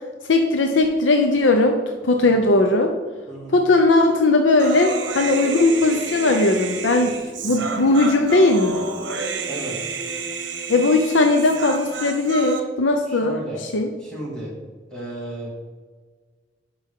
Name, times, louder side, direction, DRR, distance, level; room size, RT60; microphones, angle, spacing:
voice 1, 0.3-1.8 2.0-2.9 3.5-7.1 7.4-8.9 10.7-13.4 13.7-13.9, left 2 dB, 85° left, 4 dB, 0.7 m, -18 dB
voice 2, 2.2-2.5 3.3-3.6 7.4-7.7 9.5-9.8 13.1-13.6 14.0-14.5 14.9-15.5, right 1 dB, 5° left, -6 dB, 2.4 m, -34 dB
Human voice, 4.6-12.6, right 4 dB, 70° right, 1.0 m, -30 dB
11.5 x 5.2 x 3.7 m, 1.5 s
head